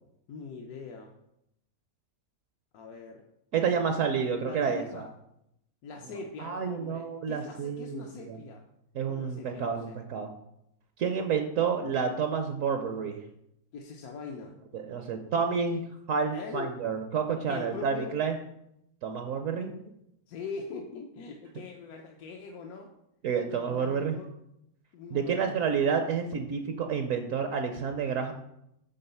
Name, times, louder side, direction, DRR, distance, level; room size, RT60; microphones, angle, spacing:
voice 1, 0.3-1.1 2.7-3.3 3.6-4.0 4.4-5.0 5.8-8.6 9.1-10.0 13.7-14.5 16.3-16.8 17.5-18.1 20.3-22.9 23.5-24.3 24.9-25.6, left 4 dB, 75° left, 1 dB, 1.2 m, -42 dB
voice 2, 3.5-5.1 6.4-8.4 8.9-10.3 11.0-13.2 14.7-18.4 19.0-19.8 23.2-24.2 25.1-28.3, right 6 dB, 65° right, 6 dB, 1.0 m, -29 dB
7.8 x 3.8 x 5.5 m, 0.80 s
omnidirectional pair, 1.6 m